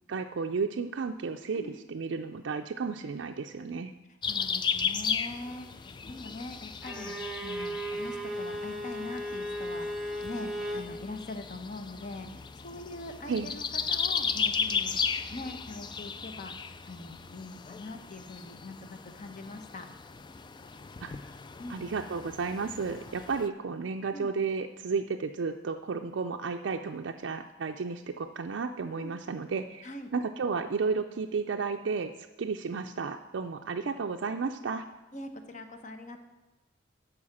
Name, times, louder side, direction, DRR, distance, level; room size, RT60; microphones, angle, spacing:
voice 1, 0.1-3.9 13.3-13.5 21.0-21.1 21.7-34.8, right 5 dB, 70° right, 4 dB, 0.4 m, -33 dB
sound 1, 4.2-23.5, left 6 dB, 25° left, 0.3 m, -36 dB
voice 2, 4.3-7.2 7.4-15.0 15.3-16.5 16.9-19.9 21.6-21.9 24.1-24.3 29.0-29.1 29.8-30.1 35.1-36.2, left 2 dB, 40° left, 7 dB, 0.9 m, -42 dB
Bowed string instrument, 6.8-10.9, equal, ahead, 0.9 m, -36 dB
11.0 x 5.0 x 7.2 m, 1.1 s
head